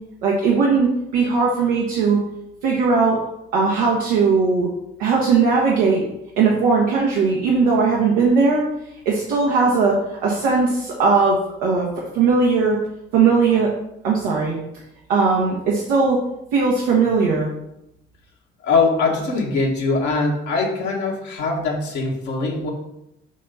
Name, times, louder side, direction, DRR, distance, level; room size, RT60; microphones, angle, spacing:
voice 1, 0.2-2.2 2.6-3.2 3.5-4.7 5.0-6.0 6.4-8.6 9.0-11.8 12.1-12.8 13.1-13.7 14.0-14.5 15.1-16.2 16.5-17.5, right 4 dB, 75° right, -3 dB, 1.2 m, -18 dB
voice 2, 18.6-22.7, left 4 dB, 65° left, -2 dB, 1.8 m, -22 dB
7.2 x 3.4 x 5.4 m, 0.84 s
figure-of-eight pair, 40°, 31 cm